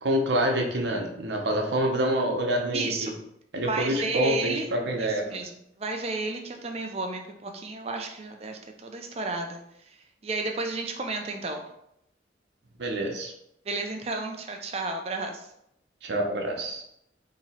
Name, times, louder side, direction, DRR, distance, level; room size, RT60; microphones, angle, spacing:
voice 1, 0.0-3.1 3.5-5.4 12.8-13.3 16.0-16.8, right 1 dB, 70° right, 1 dB, 0.7 m, -27 dB
voice 2, 2.7-3.1 3.7-4.7 5.0-5.5 5.8-10.0 10.2-11.6 13.7-15.5, right 3 dB, 35° right, 3 dB, 0.4 m, -32 dB
2.9 x 2.8 x 4.2 m, 0.77 s
head